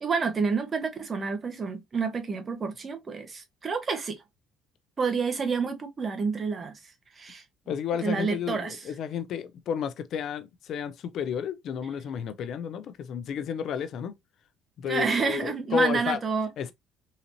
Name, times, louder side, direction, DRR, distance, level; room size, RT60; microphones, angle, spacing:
voice 1, 0.0-4.2 5.0-7.4 8.0-8.8 14.8-16.5, right 5 dB, 35° right, 1.0 m, -29 dB
voice 2, 7.7-14.1 14.8-16.2 16.6-16.7, left 7 dB, 65° left, 0.6 m, -32 dB
4.0 x 2.8 x 2.7 m
cardioid pair, 90°, 0 cm